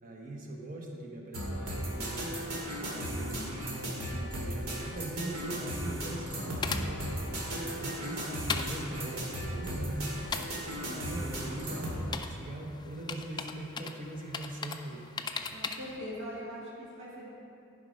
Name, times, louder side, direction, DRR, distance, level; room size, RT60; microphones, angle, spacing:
voice 1, 0.0-2.2 2.8-7.0 7.5-10.1 10.9-15.3, right 1 dB, 40° right, 0 dB, 1.1 m, -41 dB
sound 1, 1.3-12.0, equal, 85° right, 2.1 m, -36 dB
sound 2, 5.5-16.0, left 5 dB, 20° left, 0.3 m, -41 dB
voice 2, 15.5-17.3, equal, 55° right, -6 dB, 1.9 m, -41 dB
11.0 x 5.2 x 5.2 m, 2.7 s
head